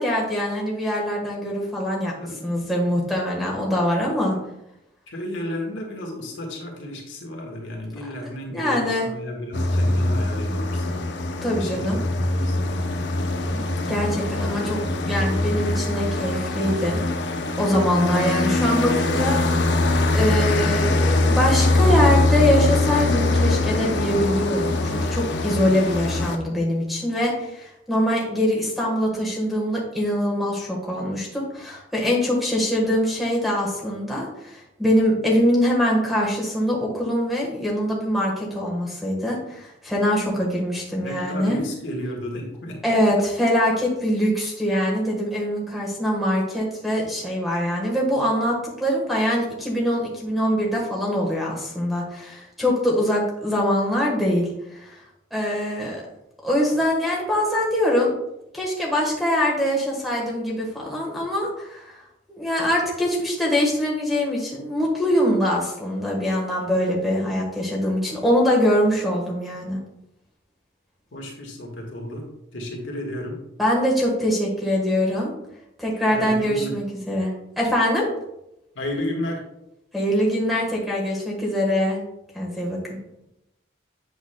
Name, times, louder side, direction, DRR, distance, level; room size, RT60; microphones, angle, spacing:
voice 1, 0.0-2.1 2.4-4.4 8.5-9.1 11.4-12.0 13.5-13.6 13.9-19.4 20.1-41.6 42.8-54.5 54.8-55.0 55.3-56.0 56.4-58.2 58.5-61.9 62.3-69.8 73.6-75.3 75.8-77.3 77.6-78.1 79.9-82.0 82.3-82.8, equal, ahead, -2 dB, 1.3 m, -23 dB
voice 2, 5.1-11.0 11.5-12.9 41.0-42.8 71.1-72.3 72.5-73.4 76.1-76.8 78.7-79.4, left 1 dB, 85° left, 0 dB, 1.5 m, -33 dB
sound 1, 9.5-26.4, left 2 dB, 65° left, 0.6 m, -22 dB
8.1 x 6.1 x 2.2 m, 0.87 s
head